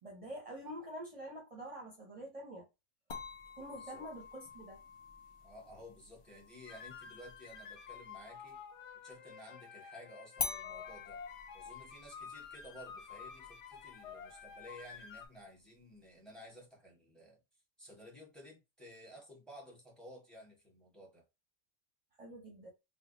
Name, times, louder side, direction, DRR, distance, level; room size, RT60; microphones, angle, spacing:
voice 1, 0.0-2.7 3.6-4.8 22.2-22.7, right 1 dB, 35° right, 0.9 m, -46 dB
sound 1, 3.1-8.7 10.4-15.4, left 5 dB, 40° left, 0.5 m, -47 dB
voice 2, 3.7-4.1 5.4-8.6 9.0-11.2 11.5-17.4 17.8-21.2, equal, ahead, 1.2 m, -54 dB
sound 2, 6.7-15.3, left 6 dB, 80° left, 0.9 m, -50 dB
3.2 x 2.2 x 3.7 m
omnidirectional pair, 1.2 m